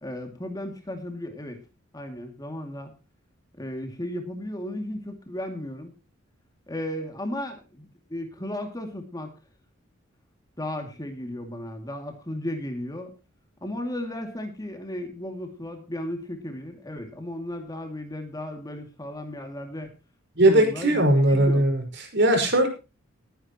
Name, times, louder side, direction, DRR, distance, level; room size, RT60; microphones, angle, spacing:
voice 1, 0.0-1.6 1.9-2.9 3.5-5.9 6.7-9.3 10.6-13.1 13.6-19.9 20.5-21.7, left 1 dB, 20° left, 5 dB, 2.4 m, -35 dB
voice 2, 20.3-21.8 22.1-22.7, right 1 dB, 60° right, 5 dB, 5.1 m, -19 dB
20.0 x 10.0 x 3.0 m, 0.31 s
head